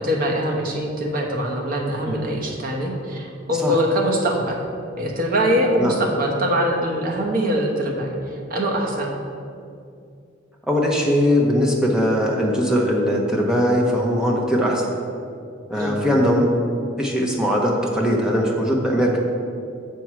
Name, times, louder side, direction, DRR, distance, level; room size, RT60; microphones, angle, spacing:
voice 1, 0.0-4.6 5.0-9.2 15.8-16.0, equal, 50° right, 0 dB, 1.1 m, -23 dB
voice 2, 10.7-14.9 15.7-16.5 17.0-19.2, equal, 5° right, -2 dB, 1.0 m, -20 dB
7.0 x 4.6 x 6.1 m, 2.4 s
head